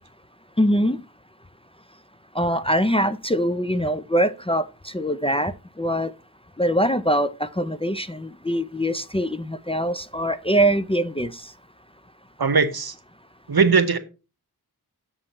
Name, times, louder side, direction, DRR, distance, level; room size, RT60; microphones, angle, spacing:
voice 1, 0.6-1.0 2.4-5.5 5.8-6.1 6.6-11.4, equal, 15° left, 0.4 m, -23 dB
voice 2, 12.4-12.9 13.5-14.0, right 5 dB, 70° right, 1.0 m, -19 dB
7.7 x 7.1 x 4.2 m
wide cardioid pair, 50°, 39 cm